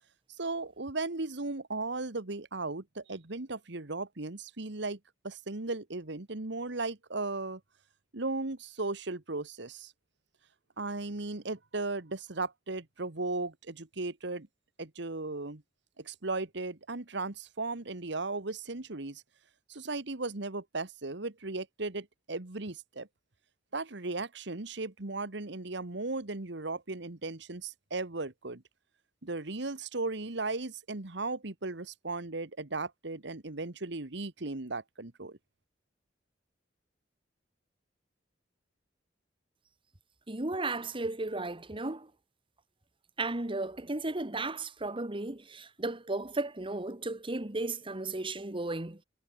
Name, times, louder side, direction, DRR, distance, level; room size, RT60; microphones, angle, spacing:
voice 1, 0.4-5.0 5.2-7.6 8.1-9.9 10.8-14.5 14.8-15.6 16.0-19.2 19.7-23.1 23.7-28.6 29.2-35.4, right 3 dB, 70° right, 1.6 m, -36 dB
voice 2, 40.3-42.1 43.2-49.0, right 2 dB, 30° right, 1.7 m, -34 dB
head